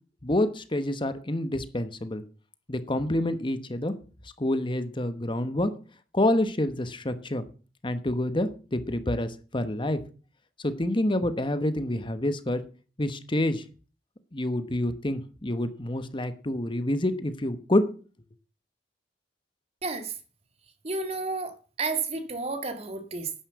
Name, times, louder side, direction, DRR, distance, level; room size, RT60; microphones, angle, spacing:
voice 1, 0.2-2.2 2.7-3.9 4.4-5.7 6.1-7.4 7.8-10.0 10.6-12.6 13.0-13.6 14.3-17.8, left 1 dB, 30° left, 1.2 m, -27 dB
voice 2, 19.8-20.1 20.8-23.3, right 3 dB, 35° right, 2.0 m, -31 dB
11.5 x 9.8 x 7.0 m
head